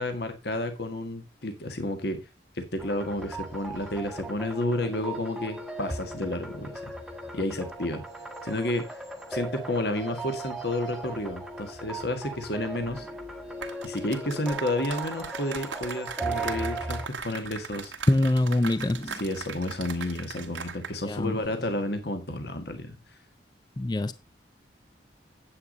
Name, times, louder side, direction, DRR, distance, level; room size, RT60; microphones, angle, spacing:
voice 1, 0.0-2.2 2.5-6.9 7.3-8.0 8.4-9.0 9.3-13.1 13.8-17.0 17.2-17.9 19.1-23.0, left 1 dB, 55° left, 1.7 m, -31 dB
sound 1, 2.8-17.1, right 2 dB, ahead, 1.3 m, -37 dB
sound 2, 13.5-21.0 21.2-21.5, right 5 dB, 85° right, 2.0 m, -39 dB
voice 2, 18.1-19.2 21.0-21.4 23.8-24.1, left 1 dB, 20° left, 0.5 m, -24 dB
9.8 x 8.4 x 3.9 m
head